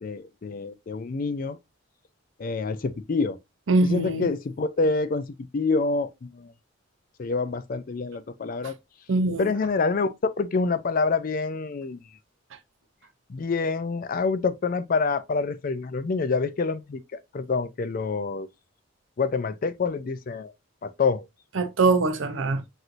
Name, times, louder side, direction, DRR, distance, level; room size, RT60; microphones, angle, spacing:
voice 1, 0.0-1.6 2.4-3.4 3.8-5.3 5.5-6.5 7.2-8.8 9.4-12.0 13.3-18.5 19.2-20.5 20.8-21.3, left 4 dB, 45° left, 0.4 m, -27 dB
voice 2, 3.7-4.3 9.1-9.4 21.6-22.6, right 3 dB, 75° right, 0.6 m, -22 dB
6.0 x 2.6 x 2.5 m
head